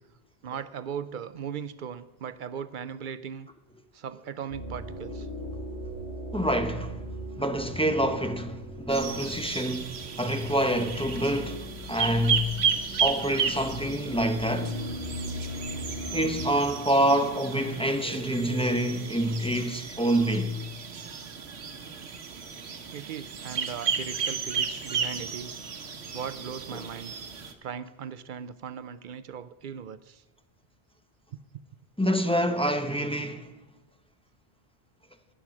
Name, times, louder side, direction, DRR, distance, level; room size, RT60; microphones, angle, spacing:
voice 1, 0.4-3.5 3.9-5.3 22.9-25.6 26.1-27.1 27.6-30.2 31.3-31.4, right 7 dB, 60° right, 0.6 m, -38 dB
sound 1, 4.5-16.5, equal, 90° left, 4.3 m, -39 dB
voice 2, 6.3-7.0 7.4-12.7 13.0-14.8 16.1-20.6 26.7-26.9 32.0-33.5, equal, 5° left, 0.7 m, -27 dB
sound 2, 8.9-27.5, right 6 dB, 85° right, 1.3 m, -33 dB
sound 3, 10.9-20.0, left 6 dB, 70° left, 1.1 m, -50 dB
11.5 x 10.5 x 6.0 m
omnidirectional pair, 1.1 m